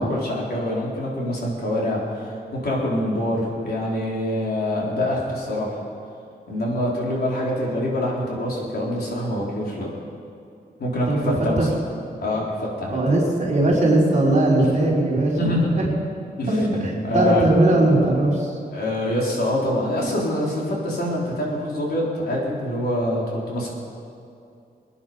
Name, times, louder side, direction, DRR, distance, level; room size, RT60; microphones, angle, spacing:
voice 1, 0.0-5.8 6.5-9.9 10.8-11.7 12.2-13.0 14.6-14.9 15.4-15.7 16.4-17.4 18.7-23.7, left 1 dB, 75° left, -4 dB, 4.1 m, -25 dB
voice 2, 11.1-11.7 12.9-15.9 16.5-18.5, right 2 dB, 45° right, -3 dB, 4.4 m, -20 dB
23.5 x 10.0 x 5.5 m, 2.6 s
wide cardioid pair, 135°, 17 cm